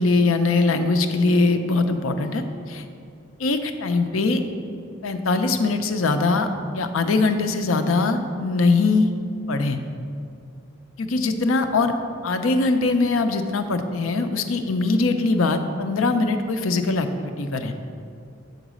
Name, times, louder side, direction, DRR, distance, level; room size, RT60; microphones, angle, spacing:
voice 1, 0.0-2.4 2.7-2.8 3.4-4.4 5.0-6.5 6.7-9.1 9.5-9.8 11.0-11.9 12.2-17.7, left 3 dB, 85° left, 7 dB, 0.5 m, -21 dB
7.3 x 4.0 x 6.2 m, 2.5 s
head